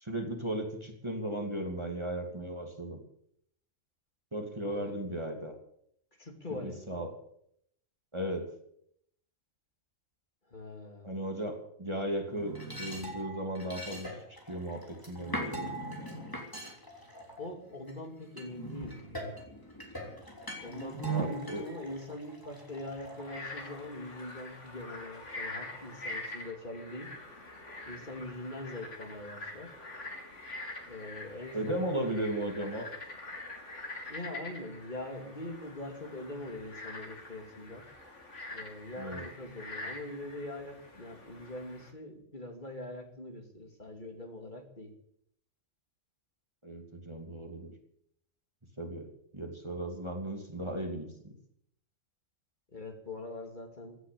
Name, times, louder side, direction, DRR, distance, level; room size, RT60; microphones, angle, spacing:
voice 1, 0.0-3.0 4.3-5.5 6.6-7.1 8.1-8.5 11.0-14.1 14.5-15.7 21.1-21.6 31.5-32.9 39.0-39.2 46.6-47.7 48.8-49.1 49.3-51.3, right 1 dB, 20° right, 3 dB, 2.5 m, -36 dB
voice 2, 6.2-7.1 10.5-11.1 17.4-19.5 20.6-27.1 27.9-29.7 30.8-31.9 34.1-37.9 38.5-44.9 52.7-54.0, left 2 dB, 35° left, 4 dB, 2.8 m, -43 dB
sound 1, 12.3-17.9 18.4-23.9, right 2 dB, 15° left, 3.4 m, -40 dB
Frog, 23.1-41.9, left 2 dB, 60° left, 3.1 m, -45 dB
16.5 x 10.0 x 8.7 m, 0.71 s
omnidirectional pair, 1.4 m